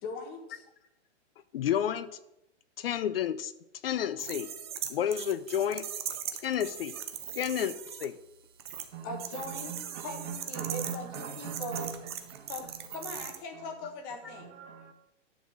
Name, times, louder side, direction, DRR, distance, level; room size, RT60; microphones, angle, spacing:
voice 1, 0.0-0.9 9.0-9.7 10.0-11.9 12.5-14.5, left 2 dB, 25° left, 4 dB, 1.4 m, -40 dB
voice 2, 1.5-2.1 2.8-3.5 3.8-4.5 4.9-5.8 6.4-6.9 7.3-8.2, left 9 dB, 55° left, 15 dB, 0.5 m, -30 dB
sound 1, 4.2-8.0 8.6-8.9 9.2-13.4, right 9 dB, 25° right, 0.4 m, -39 dB
voice 3, 9.4-13.1 13.5-13.7 14.2-14.9, right 7 dB, 75° right, 5 dB, 1.5 m, -41 dB
10.5 x 4.1 x 6.4 m, 0.87 s
hypercardioid pair, 160°, 37 cm